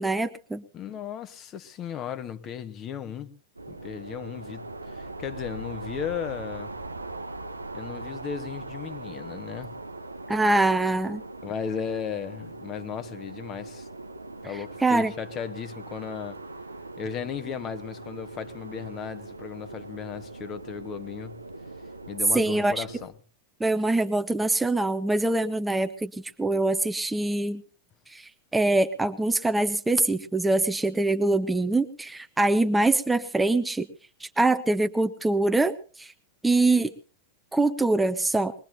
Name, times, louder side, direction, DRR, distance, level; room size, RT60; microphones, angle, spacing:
voice 1, 0.0-0.6 10.3-11.2 14.5-15.1 22.3-22.8 23.6-27.6 28.1-33.9 34.2-36.1 36.4-36.9 37.5-38.5, right 2 dB, 5° right, 0.8 m, -24 dB
voice 2, 0.7-3.3 3.7-6.7 7.7-9.7 11.4-13.9 14.4-16.4 17.0-21.4 22.1-23.1, left 8 dB, 30° left, 1.2 m, -36 dB
sound 1, 3.6-23.1, right 2 dB, 85° right, 0.8 m, -40 dB
22.5 x 21.0 x 2.7 m
figure-of-eight pair, 90°, 0 cm